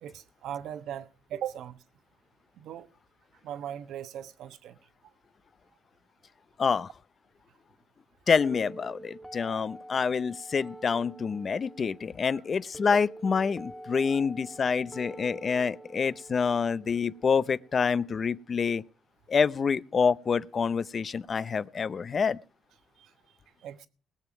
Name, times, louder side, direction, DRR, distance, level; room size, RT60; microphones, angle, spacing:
voice 1, 0.0-1.8 2.6-2.9 3.4-4.8 12.9-13.0 14.1-14.2 21.4-21.5 23.0-23.1 23.6-23.9, right 10 dB, 80° right, 1.2 m, -39 dB
voice 2, 6.6-6.9 8.3-18.8 19.3-22.4, left 5 dB, 45° left, 0.7 m, -27 dB
sound 1, 8.4-18.4, right 1 dB, ahead, 2.1 m, -47 dB
20.5 x 7.1 x 5.9 m
cardioid pair, 90°, 0 cm